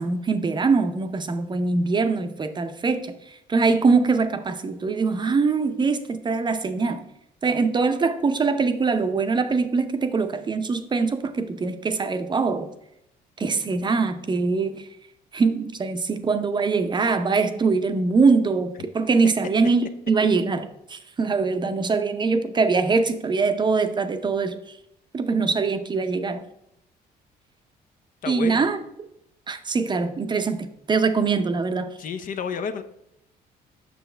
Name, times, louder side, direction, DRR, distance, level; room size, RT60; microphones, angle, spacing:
voice 1, 0.0-7.0 7.4-12.7 13.4-14.9 15.3-24.6 25.1-26.4 28.3-28.8 29.5-31.9, right 4 dB, 25° right, 9 dB, 0.6 m, -23 dB
voice 2, 28.2-28.7 32.0-32.8, left 6 dB, 55° left, 9 dB, 0.7 m, -30 dB
7.8 x 6.3 x 3.3 m, 0.79 s
cardioid pair, 110°, 17 cm